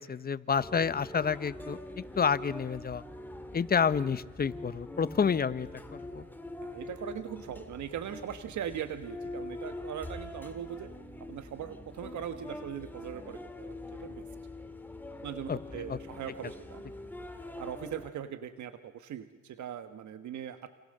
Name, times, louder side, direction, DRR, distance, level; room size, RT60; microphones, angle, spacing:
voice 1, 0.0-3.0 3.5-6.3 15.5-16.0, left 6 dB, 30° left, 15 dB, 0.9 m, -29 dB
sound 1, 0.5-18.1, left 1 dB, 5° left, 2.3 m, -44 dB
voice 2, 6.6-10.9 11.2-13.7 14.0-14.3 15.2-16.8 17.6-20.7, right 9 dB, 70° right, 10 dB, 1.4 m, -40 dB
28.0 x 27.5 x 6.7 m, 1.3 s
cardioid pair, 90°, 30 cm